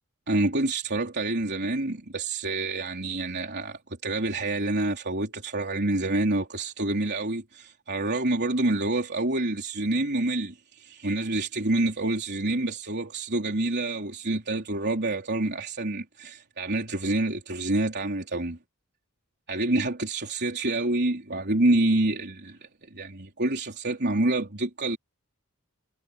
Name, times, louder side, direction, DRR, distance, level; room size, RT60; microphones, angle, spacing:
voice 1, 0.3-18.6 19.5-25.0, right 2 dB, 50° right, 3.7 m, -27 dB
head